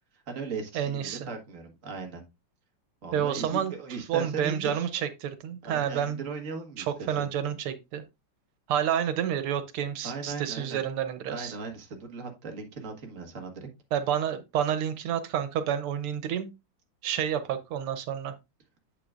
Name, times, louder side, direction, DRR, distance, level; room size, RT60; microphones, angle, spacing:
voice 1, 0.1-2.2 3.0-4.9 5.6-7.3 10.0-10.8 11.3-13.7, right 4 dB, 40° right, 1.7 m, -38 dB
voice 2, 0.8-1.3 3.1-3.7 4.1-6.2 6.8-8.0 8.7-11.5 13.9-16.5 17.0-18.3, right 9 dB, 90° right, 1.8 m, -29 dB
8.3 x 7.7 x 2.5 m
omnidirectional pair, 2.3 m